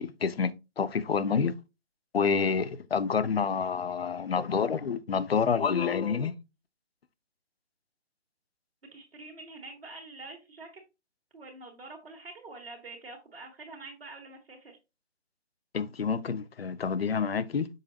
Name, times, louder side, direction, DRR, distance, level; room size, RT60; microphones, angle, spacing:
voice 1, 0.0-1.5 2.1-6.3 15.7-17.7, left 6 dB, 60° left, 0.6 m, -28 dB
voice 2, 8.9-10.7 11.3-14.8, right 3 dB, 55° right, 1.8 m, -46 dB
6.5 x 5.5 x 2.8 m
hypercardioid pair, 175°, 35 cm